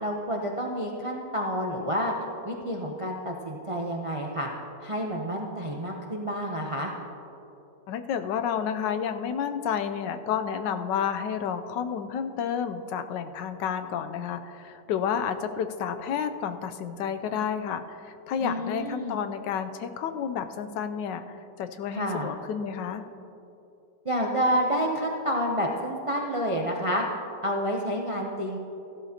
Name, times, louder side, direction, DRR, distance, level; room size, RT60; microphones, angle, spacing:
voice 1, 0.0-2.1 2.4-4.5 4.8-6.9 18.4-19.2 21.9-22.3 24.0-27.0 27.4-28.6, equal, 45° right, 0 dB, 0.4 m, -29 dB
voice 2, 7.9-23.0, left 7 dB, 90° left, 9 dB, 1.3 m, -30 dB
15.0 x 12.0 x 2.8 m, 2.9 s
omnidirectional pair, 1.9 m